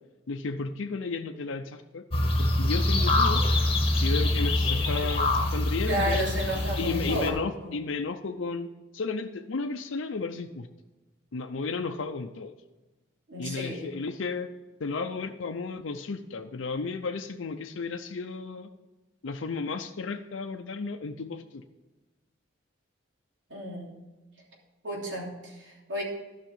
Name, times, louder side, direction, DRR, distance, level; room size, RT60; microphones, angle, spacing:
voice 1, 0.3-2.0 2.4-3.4 3.9-6.2 6.8-10.7 11.3-12.5 13.4-14.5 14.8-18.7 19.2-21.6, left 4 dB, 80° left, 5 dB, 0.6 m, -33 dB
sound 1, 2.1-7.3, left 2 dB, 30° left, 1.3 m, -25 dB
voice 2, 5.9-7.7 13.3-13.9 23.5-23.9 24.8-26.0, equal, 70° right, -3 dB, 3.2 m, -32 dB
12.0 x 6.0 x 5.4 m, 1.1 s
head